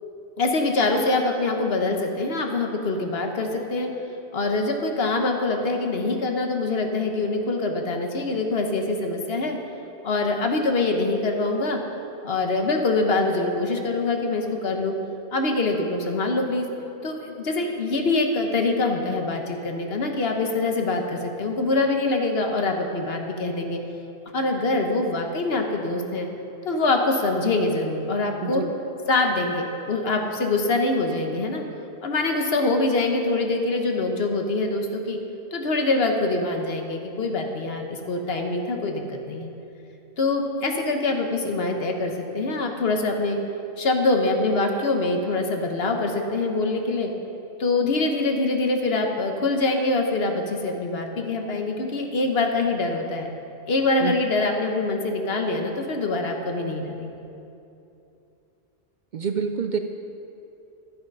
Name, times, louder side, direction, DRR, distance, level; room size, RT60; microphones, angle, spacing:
voice 1, 0.4-3.9 4.3-9.6 10.0-11.8 12.2-14.9 15.3-16.7 17.0-23.8 24.3-26.3 26.6-28.6 29.1-31.6 32.0-35.2 35.5-39.5 40.2-43.4 43.8-47.1 47.6-53.3 53.7-57.2, left 2 dB, 70° left, 3 dB, 1.3 m, -24 dB
voice 2, 59.1-59.8, right 6 dB, 55° right, 6 dB, 0.6 m, -26 dB
11.5 x 8.5 x 5.4 m, 2.8 s
omnidirectional pair, 1.1 m